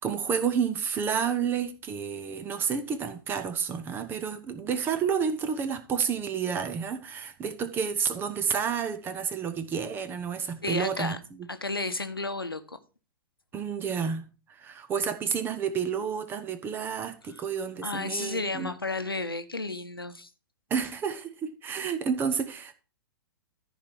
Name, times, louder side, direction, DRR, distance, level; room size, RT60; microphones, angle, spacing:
voice 1, 0.0-11.2 13.5-18.7 20.7-22.7, right 7 dB, 20° right, 0.9 m, -30 dB
voice 2, 10.6-11.2 11.5-12.8 17.2-17.4 17.8-20.3, left 3 dB, 80° left, 1.0 m, -32 dB
14.0 x 4.7 x 4.4 m
figure-of-eight pair, 110°, 12 cm